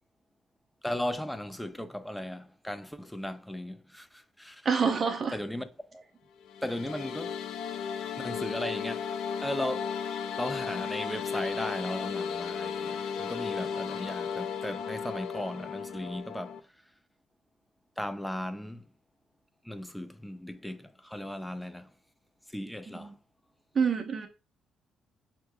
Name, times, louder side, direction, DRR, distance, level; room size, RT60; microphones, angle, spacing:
voice 1, 0.8-4.7 5.3-6.0 6.6-7.4 8.2-9.1 9.4-9.9 10.4-16.6 18.0-18.9 19.6-21.9 22.5-23.2, left 1 dB, 5° left, 0.5 m, -36 dB
voice 2, 4.6-5.4 22.9-23.1 23.7-24.3, right 6 dB, 45° right, 1.0 m, -27 dB
sound 1, 6.4-16.6, left 7 dB, 85° left, 0.4 m, -35 dB
6.2 x 3.0 x 2.3 m
cardioid pair, 90°, 0 cm